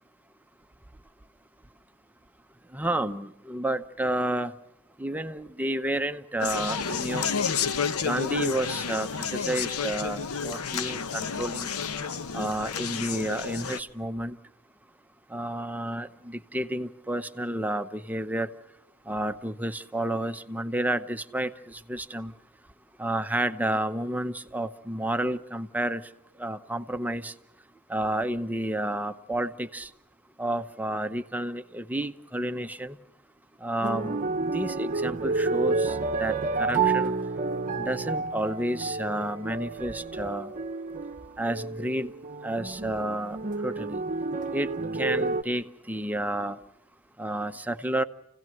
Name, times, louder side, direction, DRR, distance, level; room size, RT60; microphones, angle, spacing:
voice 1, 2.7-4.5 5.0-7.3 8.0-11.7 12.3-14.4 15.3-18.5 19.1-22.3 23.0-26.0 26.4-27.3 27.9-29.9 30.4-33.0 33.6-37.1 37.8-40.5 41.4-42.1 42.4-43.4 43.6-44.0 44.5-44.7 45.0-46.6 47.2-48.0, right 1 dB, 5° right, 9 dB, 0.8 m, -30 dB
Conversation, 6.4-13.8, left 6 dB, 70° left, 0.8 m, -30 dB
sound 1, 33.8-45.4, right 3 dB, 35° right, 0.9 m, -30 dB
29.0 x 17.0 x 7.7 m, 0.91 s
head